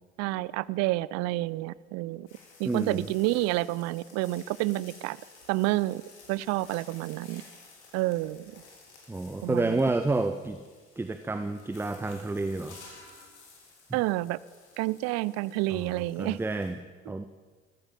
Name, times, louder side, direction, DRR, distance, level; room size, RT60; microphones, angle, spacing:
voice 1, 0.2-2.3 2.6-5.2 5.5-6.0 6.3-7.4 7.9-8.4 9.4-9.8 13.9-14.4 14.8-16.4, right 18 dB, 50° right, 21 dB, 0.5 m, -29 dB
sound 1, 2.3-16.7, left 4 dB, 75° left, 3.5 m, -54 dB
voice 2, 2.6-3.1 9.1-10.6 11.0-12.8 13.9-14.0 15.7-16.8 17.1-17.3, right 2 dB, 5° right, 9 dB, 0.6 m, -30 dB
14.5 x 14.0 x 5.5 m, 1.5 s
figure-of-eight pair, 65°, 34 cm